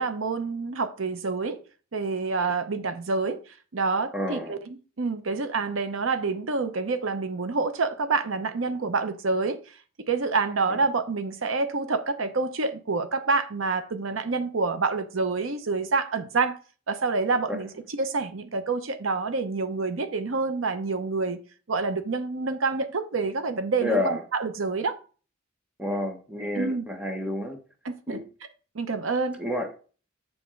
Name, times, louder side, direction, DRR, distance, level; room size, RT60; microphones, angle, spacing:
voice 1, 0.0-1.6 1.9-3.4 3.7-9.6 10.1-16.5 16.9-21.4 21.7-25.0 26.6-26.8 27.8-28.2 28.7-29.4, right 4 dB, 80° right, 0.7 m, -27 dB
voice 2, 4.1-4.6 10.7-10.8 17.5-17.6 23.8-24.2 25.8-27.6 28.1-28.2 29.4-29.7, left 1 dB, 5° right, 1.2 m, -29 dB
7.2 x 3.5 x 6.3 m
head